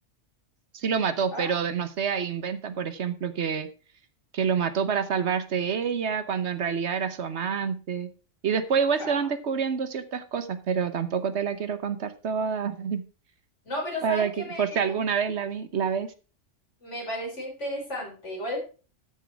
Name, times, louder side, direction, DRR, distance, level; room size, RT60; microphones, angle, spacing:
voice 1, 0.7-3.7 4.3-8.1 8.4-13.0 14.0-16.1, right 6 dB, 65° right, 12 dB, 1.2 m, -27 dB
voice 2, 13.6-15.0 16.8-18.6, left 1 dB, 75° left, -1 dB, 4.8 m, -34 dB
13.0 x 6.2 x 4.6 m, 0.35 s
omnidirectional pair, 1.2 m